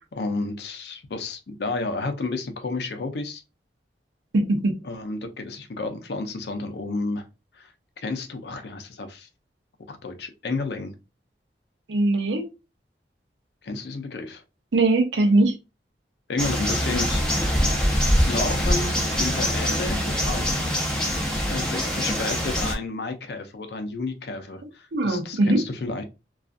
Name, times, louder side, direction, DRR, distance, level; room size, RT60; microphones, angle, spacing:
voice 1, 0.1-3.4 4.8-7.3 7.5-7.7 8.0-9.3 9.9-10.9 13.6-14.4 16.3-17.8 18.2-20.6 21.5-26.0, left 3 dB, 70° left, 0.5 m, -31 dB
voice 2, 4.3-4.8 11.9-12.5 14.7-15.5 24.9-25.6, right 2 dB, 90° right, 0.6 m, -20 dB
sound 1, 16.4-22.7, equal, 5° left, 0.5 m, -24 dB
2.5 x 2.3 x 2.3 m
head